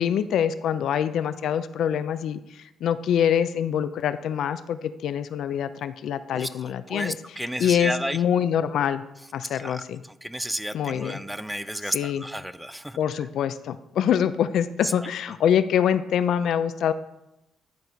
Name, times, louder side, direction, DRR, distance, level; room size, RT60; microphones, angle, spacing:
voice 1, 0.0-2.4 2.8-7.1 7.6-9.0 9.3-10.0 10.7-11.2 11.9-12.2 13.0-16.9, left 9 dB, 75° left, 12 dB, 0.4 m, -25 dB
voice 2, 6.9-8.2 9.5-13.3 14.8-15.1, equal, 5° right, 13 dB, 0.4 m, -32 dB
10.5 x 3.9 x 4.4 m, 0.88 s
cardioid pair, 90°, 0 cm